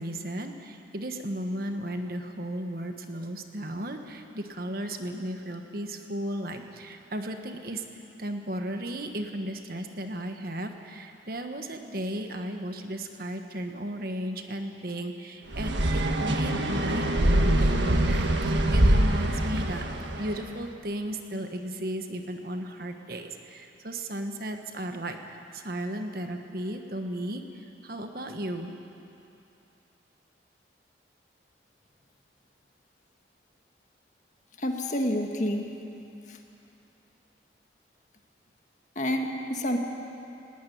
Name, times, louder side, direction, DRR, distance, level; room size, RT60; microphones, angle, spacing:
voice 1, 0.0-7.8 8.2-19.9 20.2-28.8, right 1 dB, 50° right, 5 dB, 1.4 m, -35 dB
sound 1, 15.5-20.4, right 1 dB, 75° right, 1.5 m, -24 dB
voice 2, 34.6-35.7 36.3-36.4 39.0-39.8, equal, 40° left, 3 dB, 1.8 m, -28 dB
19.5 x 17.5 x 9.4 m, 2.8 s
head